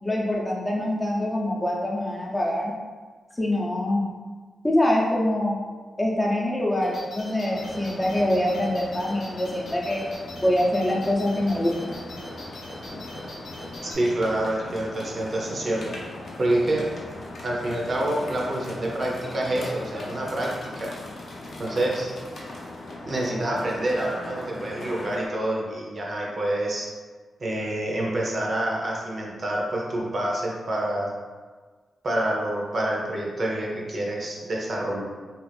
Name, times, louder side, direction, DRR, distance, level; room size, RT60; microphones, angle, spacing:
voice 1, 0.0-2.7 3.3-4.0 4.6-5.6 6.0-10.0 10.4-12.0, left 1 dB, 20° left, -4 dB, 0.7 m, -24 dB
sound 1, 6.8-14.0, left 1 dB, 75° left, 1.0 m, -42 dB
sound 2, 7.5-25.3, left 1 dB, 60° left, 0.6 m, -39 dB
voice 2, 13.8-15.9 16.4-16.9 17.4-20.9 21.6-22.1 23.0-26.9 27.4-31.1 32.0-35.0, right 1 dB, 45° right, -2 dB, 0.6 m, -27 dB
2.5 x 2.4 x 3.3 m, 1.5 s
cardioid pair, 75°, 0 cm